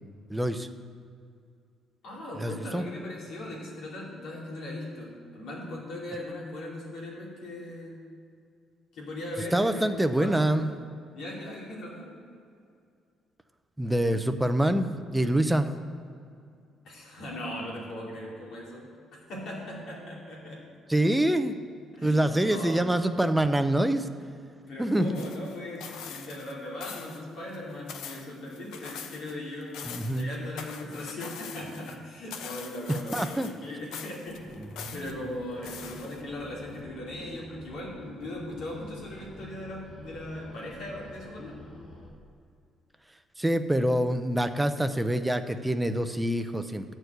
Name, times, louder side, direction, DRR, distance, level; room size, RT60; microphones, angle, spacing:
voice 1, 0.3-0.7 2.4-2.8 9.5-10.7 13.8-15.7 20.9-21.6 22.0-24.1 24.8-25.2 29.9-30.3 32.9-33.5 34.8-34.9 43.4-46.9, right 1 dB, 5° right, 9 dB, 0.4 m, -25 dB
voice 2, 2.0-8.0 8.9-10.6 11.1-12.2 16.8-20.7 22.0-22.8 24.7-41.6, left 1 dB, 60° left, -4 dB, 2.6 m, -39 dB
sound 1, 25.1-26.5 26.8-27.2 27.5-29.4 29.6-32.0 32.3-33.6 33.9-35.1 35.6-36.4 36.8-36.9, left 7 dB, 85° left, 0.7 m, -42 dB
sound 2, 34.3-42.1, equal, 30° left, 1.3 m, -47 dB
11.0 x 4.6 x 7.8 m, 2.4 s
cardioid pair, 175°, 0 cm